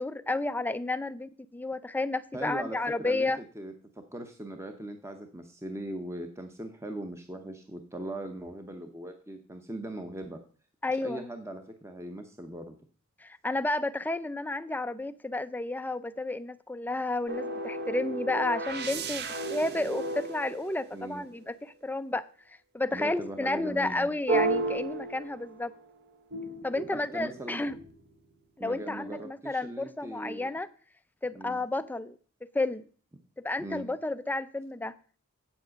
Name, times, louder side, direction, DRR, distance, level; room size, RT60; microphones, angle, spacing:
voice 1, 0.0-3.4 10.8-11.3 13.2-22.2 22.7-25.7 26.6-27.8 28.6-30.7 31.2-32.2 32.5-32.9 33.4-35.0, left 2 dB, 10° left, 0.4 m, -31 dB
voice 2, 2.3-10.4 11.0-12.7 20.9-21.3 22.9-24.1 26.9-27.6 28.6-30.5 31.3-31.6 33.6-33.9, right 1 dB, 10° right, 0.8 m, -40 dB
sound 1, 17.3-21.4 24.3-25.8 26.3-28.1, right 2 dB, 50° right, 0.8 m, -33 dB
8.5 x 7.3 x 6.4 m
head